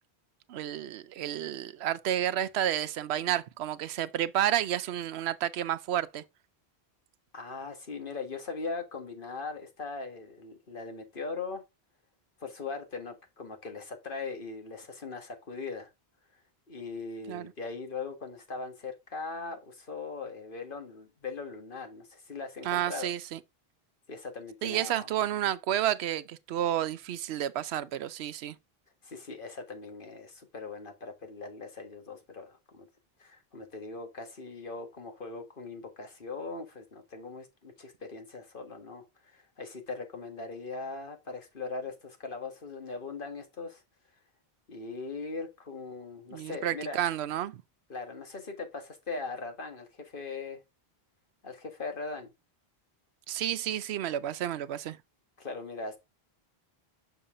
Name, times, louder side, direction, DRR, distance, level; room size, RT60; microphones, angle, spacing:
voice 1, 0.5-6.2 17.3-17.5 22.6-23.4 24.6-28.6 46.3-47.6 53.3-55.0, right 11 dB, 90° right, 0.8 m, -31 dB
voice 2, 7.3-11.6 12.4-15.9 16.7-23.1 24.1-25.1 29.0-32.9 33.2-43.8 44.7-47.0 47.9-50.6 51.4-52.3 55.4-56.0, left 4 dB, 55° left, 1.8 m, -40 dB
6.5 x 5.6 x 3.7 m
omnidirectional pair, 1.0 m